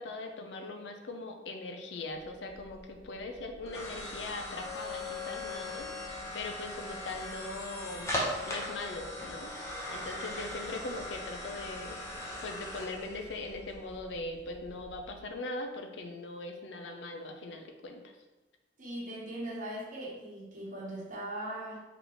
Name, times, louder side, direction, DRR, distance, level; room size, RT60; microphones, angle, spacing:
voice 1, 0.0-8.1 8.5-9.5 9.9-12.0 12.4-18.1, left 2 dB, 85° left, 4 dB, 0.5 m, -40 dB
sound 1, 2.3-15.2, left 1 dB, 15° left, 0.8 m, -40 dB
voice 2, 18.8-21.8, right 1 dB, 45° right, -5 dB, 1.0 m, -39 dB
3.9 x 3.6 x 2.9 m, 1.1 s
head